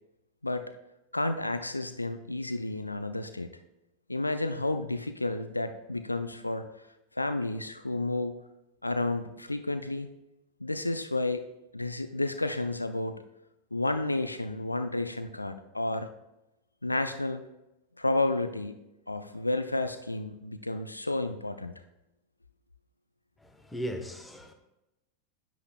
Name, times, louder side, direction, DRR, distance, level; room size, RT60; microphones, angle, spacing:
voice 1, 1.1-3.5 4.1-6.6 7.2-8.4 8.8-10.1 10.6-11.4 11.7-13.2 13.7-16.1 16.8-17.4 18.0-18.8 19.1-21.8, left 2 dB, 85° left, 0.4 m, -31 dB
voice 2, 23.4-24.5, equal, 10° left, 1.0 m, -37 dB
10.0 x 8.2 x 2.2 m
figure-of-eight pair, 85°, 0 cm